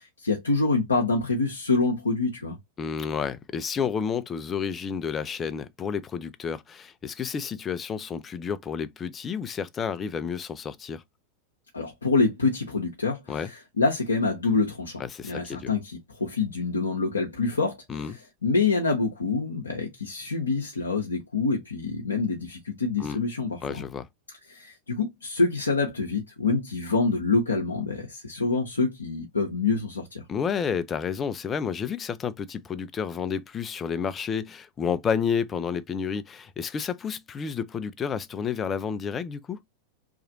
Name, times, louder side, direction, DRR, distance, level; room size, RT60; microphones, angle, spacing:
voice 1, 0.0-2.6 11.7-17.8 18.4-23.8 24.5-30.2, left 3 dB, 75° left, 0.6 m, -26 dB
voice 2, 2.8-11.0 13.3-13.5 15.0-15.7 17.9-18.2 23.0-23.2 23.6-24.1 30.3-39.6, left 6 dB, 20° left, 0.3 m, -30 dB
3.0 x 2.4 x 2.5 m
figure-of-eight pair, 90°, 0 cm